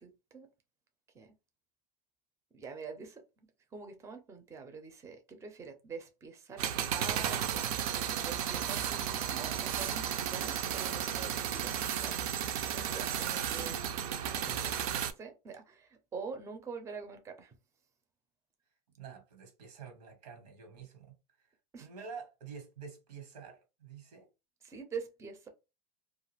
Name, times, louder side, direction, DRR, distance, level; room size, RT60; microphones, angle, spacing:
voice 1, 0.0-0.5 1.1-1.3 2.5-3.2 3.7-12.1 12.7-13.8 14.4-14.6 15.2-17.6 21.7-21.9 24.6-25.5, right 5 dB, 15° right, 0.5 m, -45 dB
sound 1, 6.6-15.1, right 9 dB, 70° right, 0.5 m, -34 dB
voice 2, 14.4-15.0 19.0-21.5 21.8-24.3, right 6 dB, 90° right, 1.3 m, -48 dB
2.4 x 2.4 x 3.1 m
supercardioid pair, 130°, 20 cm